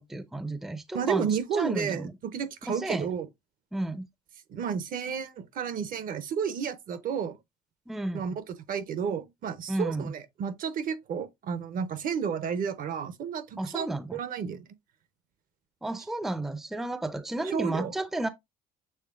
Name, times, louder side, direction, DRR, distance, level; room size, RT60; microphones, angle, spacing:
voice 1, 0.0-2.1 2.7-3.1 3.7-4.1 7.9-8.4 9.7-10.1 13.6-14.2 15.8-18.3, right 2 dB, ahead, 0.4 m, -32 dB
voice 2, 0.9-3.3 4.5-7.4 8.1-14.6 17.5-17.9, right 7 dB, 55° right, 0.7 m, -32 dB
6.5 x 3.2 x 2.4 m
cardioid pair, 110°, 17 cm